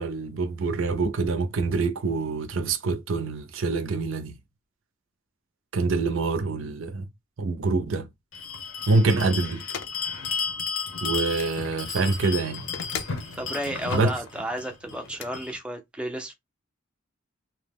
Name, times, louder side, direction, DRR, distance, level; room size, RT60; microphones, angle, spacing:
voice 1, 0.0-4.4 5.7-7.0 7.4-8.1 8.9-9.6 11.0-12.7 13.9-14.1, right 3 dB, 70° right, 0.5 m, -25 dB
Bell, 8.3-15.6, left 5 dB, 85° left, 0.8 m, -33 dB
sound 1, 9.7-10.0 11.3-11.5 12.7-13.2 15.1-15.3, left 7 dB, 60° left, 0.5 m, -36 dB
voice 2, 13.4-16.3, right 1 dB, 5° right, 0.4 m, -32 dB
2.7 x 2.1 x 3.4 m
head